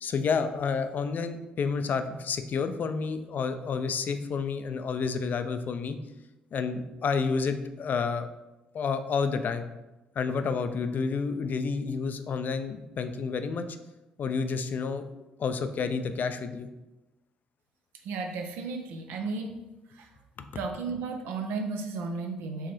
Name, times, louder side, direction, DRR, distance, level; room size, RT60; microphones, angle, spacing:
voice 1, 0.0-6.0 6.5-8.3 8.7-9.7 10.2-13.7 14.2-15.0 15.4-16.7, left 5 dB, 50° left, 9 dB, 0.4 m, -30 dB
voice 2, 18.0-19.6 19.9-20.1 20.5-22.7, right 4 dB, 70° right, 4 dB, 0.5 m, -34 dB
4.6 x 3.0 x 3.1 m, 1.0 s
hypercardioid pair, 50°, 4 cm